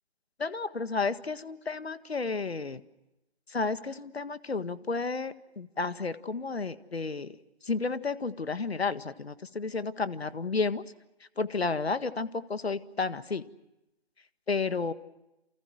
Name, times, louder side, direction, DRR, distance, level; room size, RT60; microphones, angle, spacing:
voice 1, 0.4-2.8 3.5-7.4 7.6-10.8 11.4-13.5 14.5-14.9, left 4 dB, 65° left, 12 dB, 1.8 m, -32 dB
29.0 x 29.0 x 6.3 m, 0.92 s
figure-of-eight pair, 165°, 33 cm